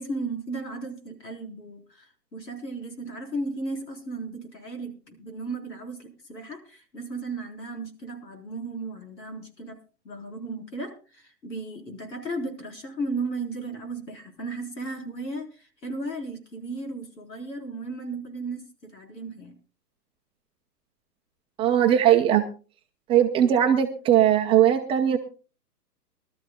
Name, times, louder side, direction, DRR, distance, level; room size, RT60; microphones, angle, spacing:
voice 1, 0.0-19.5, right 2 dB, 80° left, 4 dB, 4.2 m, -35 dB
voice 2, 21.6-22.4 23.1-25.2, right 10 dB, 10° right, 3 dB, 0.6 m, -19 dB
24.0 x 13.0 x 2.3 m, 0.35 s
hypercardioid pair, 125°, 49 cm